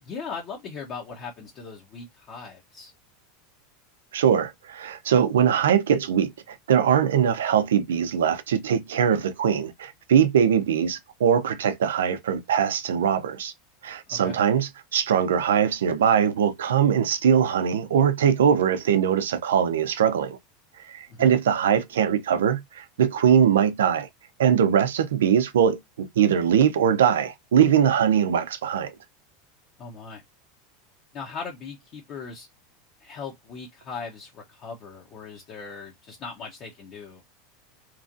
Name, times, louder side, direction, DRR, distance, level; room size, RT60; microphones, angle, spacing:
voice 1, 0.0-2.9 14.1-14.4 21.1-21.3 29.8-30.2 31.1-32.5 33.0-37.2, left 5 dB, 45° left, 0.8 m, -39 dB
voice 2, 4.1-13.5 13.8-20.4 20.9-24.1 24.4-28.9, right 8 dB, 90° right, 0.5 m, -21 dB
3.0 x 2.4 x 2.5 m
supercardioid pair, 115°, 0 cm